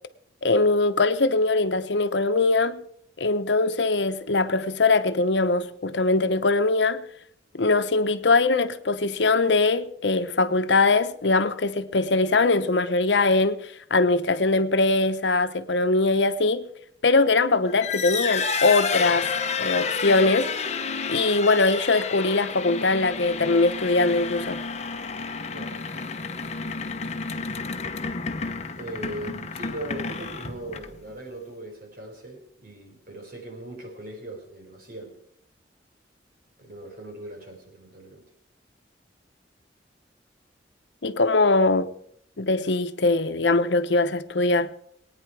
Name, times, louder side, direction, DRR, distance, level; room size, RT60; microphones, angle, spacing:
voice 1, 0.4-2.8 3.2-7.1 7.5-16.7 17.0-19.3 19.6-20.5 21.1-24.6 41.0-41.9 42.4-44.7, left 3 dB, 80° left, 0.9 m, -22 dB
sound 1, 17.7-31.1, left 5 dB, 40° left, 0.9 m, -30 dB
voice 2, 25.5-25.8 28.8-35.2 36.6-38.3, right 1 dB, 55° right, 4.3 m, -39 dB
22.5 x 9.6 x 4.7 m
head